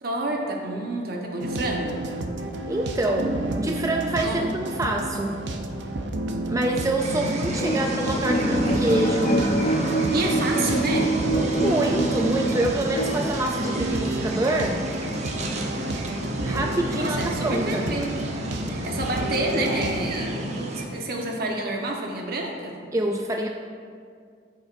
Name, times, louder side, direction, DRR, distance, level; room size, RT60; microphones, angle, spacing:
voice 1, 0.0-2.0 4.2-4.5 10.1-11.1 17.0-18.1 18.7-22.8, right 2 dB, 55° right, 0 dB, 1.2 m, -28 dB
sound 1, 1.4-20.2, right 1 dB, 75° right, 0.7 m, -31 dB
voice 2, 2.7-5.4 6.5-9.5 11.5-14.9 16.4-17.9 22.9-23.5, right 1 dB, 20° right, 2 dB, 0.4 m, -26 dB
sound 2, 7.0-20.9, right 1 dB, 40° right, 0.9 m, -31 dB
sound 3, 7.6-13.3, right 2 dB, 40° left, 0.6 m, -26 dB
13.5 x 7.2 x 2.6 m, 2.2 s
head